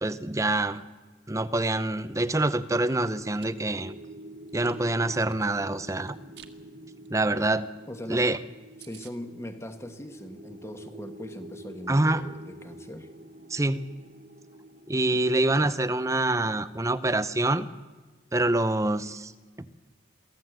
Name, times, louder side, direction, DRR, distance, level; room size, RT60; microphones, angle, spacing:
voice 1, 0.0-0.8 1.3-3.9 4.5-6.2 7.1-7.7 8.1-8.4 11.9-12.2 13.5-13.8 14.9-17.7 18.3-19.3, right 2 dB, 15° right, 14 dB, 0.6 m, -25 dB
sound 1, 2.2-16.7, right 1 dB, 40° right, 1.1 m, -47 dB
Chewing mastication, 3.4-3.5 4.0-5.5 6.0-6.5 6.9-7.1 7.4-7.5 7.8-7.9 8.2-8.3 8.5-8.6 8.8-9.1, right 11 dB, 60° right, 1.5 m, -51 dB
voice 2, 7.9-8.3 8.8-13.1 15.1-15.3, left 1 dB, 15° left, 8 dB, 1.3 m, -40 dB
23.5 x 16.0 x 7.9 m, 1.4 s
head